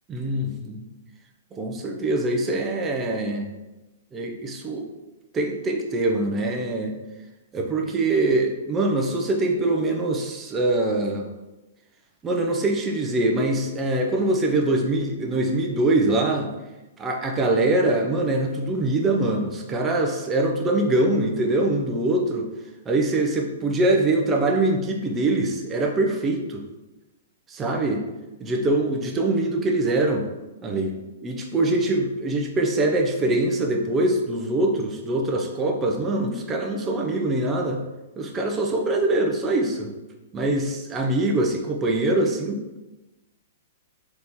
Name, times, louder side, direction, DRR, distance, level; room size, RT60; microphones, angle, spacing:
voice 1, 0.1-0.9 1.5-3.5 4.1-4.9 5.3-6.9 7.5-11.3 12.2-16.5 17.0-22.5 22.9-26.6 27.5-28.0 28.4-30.2 30.6-31.0 31.2-37.8 38.2-39.9 40.3-42.8, right 2 dB, 15° right, 2 dB, 0.6 m, -23 dB
4.0 x 3.0 x 3.6 m, 1.1 s
hypercardioid pair, 145°, 0 cm